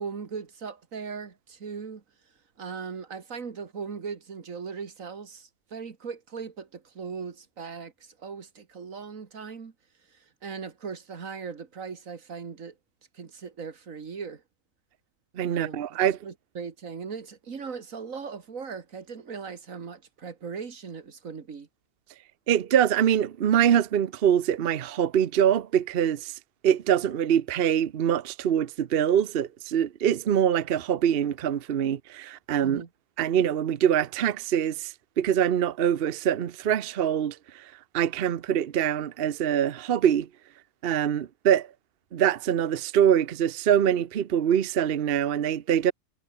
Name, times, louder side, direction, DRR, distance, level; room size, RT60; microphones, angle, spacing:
voice 1, 0.0-2.0 2.6-9.7 10.4-12.7 13.1-14.4 15.5-21.7 32.6-32.9, right 5 dB, 90° right, 2.2 m, -38 dB
voice 2, 15.4-16.2 22.5-26.3 26.6-32.8 33.2-37.6 37.9-40.3 40.8-41.7 42.1-45.9, right 9 dB, 55° right, 0.9 m, -24 dB
omnidirectional pair, 1.3 m